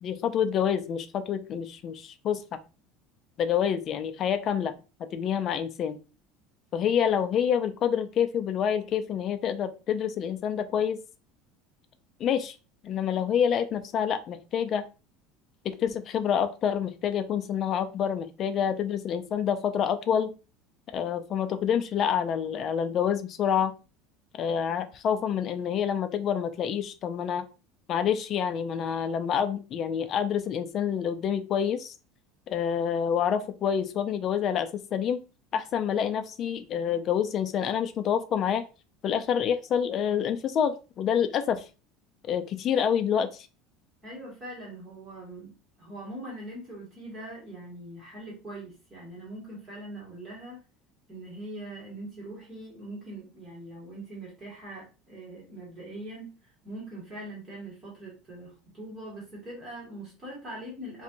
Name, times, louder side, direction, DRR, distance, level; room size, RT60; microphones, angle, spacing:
voice 1, 0.0-2.6 3.4-4.7 5.1-6.0 6.7-11.0 12.2-12.5 12.8-14.8 15.6-20.3 20.9-23.7 24.4-27.4 27.9-31.9 32.5-35.2 35.5-38.6 39.0-41.6 42.3-43.3, left 8 dB, 30° left, 9 dB, 0.3 m, -27 dB
voice 2, 44.0-45.5 45.8-50.6 51.1-56.3 56.6-61.0, right 1 dB, 20° right, -5 dB, 1.5 m, -42 dB
4.1 x 2.6 x 2.6 m, 0.31 s
cardioid pair, 175°, 0 cm